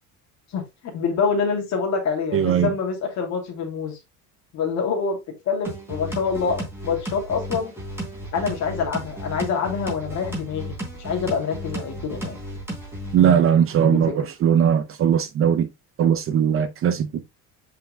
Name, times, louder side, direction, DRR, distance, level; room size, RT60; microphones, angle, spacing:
voice 1, 0.5-4.0 4.5-7.7 8.3-12.4 13.8-14.1, left 5 dB, 45° left, 2.8 m, -26 dB
voice 2, 2.3-2.7 13.1-15.7 16.0-17.2, right 8 dB, 35° right, 0.6 m, -19 dB
sound 1, 5.6-13.2, right 1 dB, 5° right, 3.5 m, -33 dB
7.6 x 5.6 x 2.2 m
cardioid pair, 160°, 38 cm